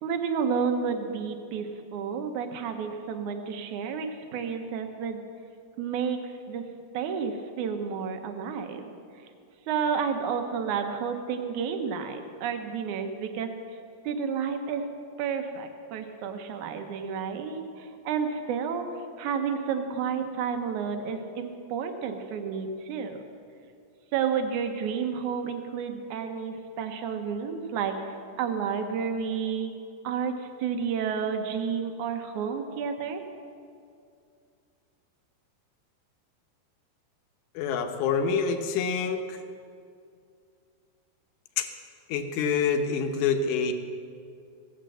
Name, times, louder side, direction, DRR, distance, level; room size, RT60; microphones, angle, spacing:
voice 1, 0.0-5.2 5.8-8.8 9.7-13.5 14.0-14.9 15.2-23.2 24.1-29.7 30.0-33.2, right 6 dB, 80° right, 6 dB, 1.7 m, -31 dB
voice 2, 37.6-39.4 41.6-41.7 42.1-43.7, left 5 dB, 85° left, 6 dB, 3.1 m, -26 dB
16.0 x 9.7 x 7.7 m, 2.4 s
omnidirectional pair, 4.8 m